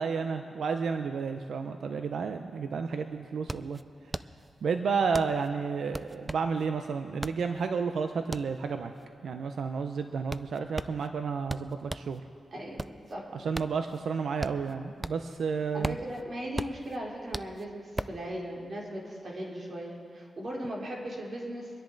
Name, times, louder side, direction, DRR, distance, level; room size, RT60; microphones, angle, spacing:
voice 1, 0.0-3.8 4.6-8.9 9.2-12.2 13.3-16.0, right 5 dB, 75° right, 7 dB, 0.6 m, -31 dB
sound 1, 2.5-2.6 2.9-12.2 12.6-15.4 15.7-18.3, right 2 dB, 20° right, 0.4 m, -39 dB
voice 2, 12.5-12.8 13.1-13.3 15.7-21.7, equal, 55° right, -3 dB, 4.0 m, -38 dB
25.0 x 10.5 x 4.0 m, 2.3 s
cardioid pair, 75°, 0 cm